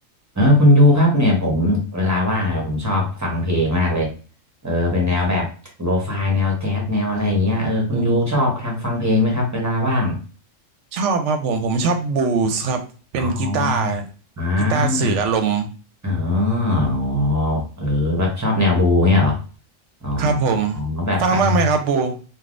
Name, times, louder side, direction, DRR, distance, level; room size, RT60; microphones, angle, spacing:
voice 1, 0.3-4.1 4.6-5.5 5.8-10.2 13.1-13.9 14.4-15.1 16.0-19.4 20.0-20.4 20.7-21.6, left 1 dB, 15° right, -1 dB, 0.7 m, -20 dB
voice 2, 7.9-8.2 10.9-12.8 13.1-14.1 14.7-15.7 20.2-20.8 21.2-22.2, right 4 dB, 70° right, 6 dB, 0.8 m, -21 dB
3.4 x 2.3 x 2.4 m, 0.37 s
omnidirectional pair, 1.3 m